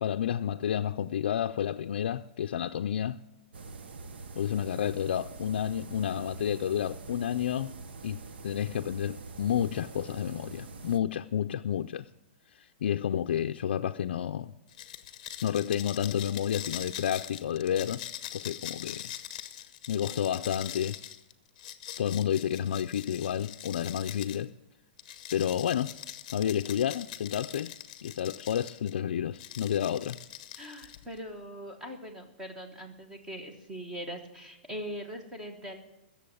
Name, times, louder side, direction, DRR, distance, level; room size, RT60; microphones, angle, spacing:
voice 1, 0.0-3.2 4.4-7.7 8.0-12.1 12.5-14.5 15.4-18.0 18.3-19.1 19.9-21.0 22.0-24.5 25.3-25.9 26.3-27.7 28.0-30.2, left 9 dB, 75° left, 0.4 m, -30 dB
sound 1, 3.5-11.0, right 3 dB, 80° right, 1.1 m, -45 dB
sound 2, 14.7-24.4 25.0-28.9 29.3-31.2, left 11 dB, 40° left, 0.8 m, -43 dB
voice 2, 30.6-35.8, equal, 10° right, 1.2 m, -41 dB
15.5 x 7.2 x 9.1 m
hypercardioid pair, 175°, 6 cm